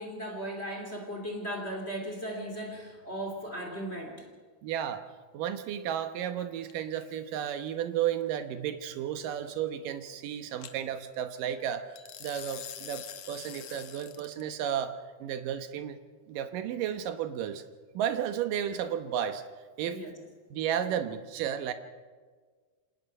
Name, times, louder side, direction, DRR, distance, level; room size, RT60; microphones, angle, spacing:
voice 1, 0.0-4.2 19.9-20.1, right 1 dB, 20° left, 2 dB, 2.4 m, -37 dB
voice 2, 4.6-5.0 5.3-11.9 12.2-16.0 16.3-17.6 17.9-19.4 19.8-20.0 20.5-21.7, right 9 dB, 70° right, 9 dB, 2.4 m, -33 dB
sound 1, 6.7-7.1 10.6-10.7 12.0-14.4, left 10 dB, 70° left, 1.5 m, -44 dB
27.0 x 18.0 x 5.4 m, 1.5 s
omnidirectional pair, 4.4 m